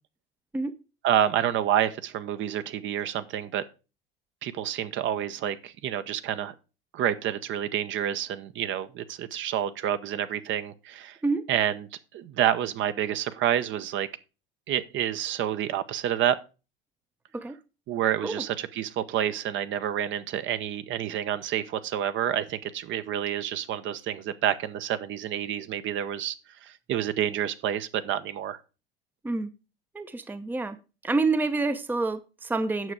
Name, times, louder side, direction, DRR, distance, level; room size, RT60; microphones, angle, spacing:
voice 1, 1.0-3.6 4.4-6.5 6.9-11.2 11.5-11.9 12.1-14.1 14.7-16.4 17.9-26.3 26.6-28.6, right 10 dB, 40° right, 0.9 m, -28 dB
voice 2, 29.9-30.8 31.0-32.9, right 3 dB, 5° right, 0.8 m, -28 dB
9.3 x 7.0 x 4.8 m
figure-of-eight pair, 75°, 29 cm